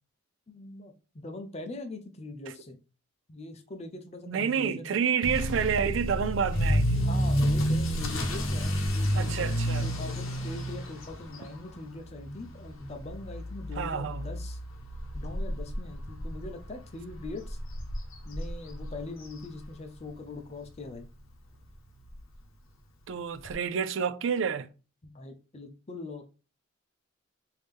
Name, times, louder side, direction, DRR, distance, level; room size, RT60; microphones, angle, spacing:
voice 1, 0.5-2.8 3.3-5.0 7.0-9.5 9.8-14.6 15.1-17.6 18.2-21.1 25.0-26.3, left 2 dB, 30° left, 0.5 m, -42 dB
voice 2, 4.3-7.1 9.1-9.9 13.8-14.3 23.1-24.7, right 7 dB, 65° right, 0.4 m, -29 dB
Motor vehicle (road) / Accelerating revving vroom, 5.2-20.1 20.4-20.8 21.3-21.4 21.7-21.8 22.0-22.1 23.4-23.5, equal, 75° left, 0.8 m, -31 dB
3.5 x 2.8 x 3.2 m
head